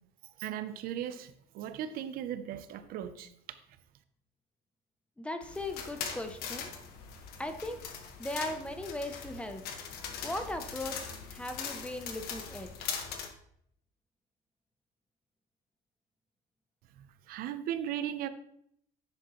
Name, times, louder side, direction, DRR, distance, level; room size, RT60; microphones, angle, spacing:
voice 1, 0.4-3.3 17.0-18.3, right 10 dB, 60° right, 0.6 m, -37 dB
voice 2, 5.2-6.7 7.4-7.8 8.2-9.6 10.2-12.7, left 1 dB, 5° left, 0.6 m, -38 dB
sound 1, 5.4-13.3, left 6 dB, 65° left, 1.3 m, -41 dB
10.5 x 7.6 x 3.0 m
cardioid pair, 170°, 17 cm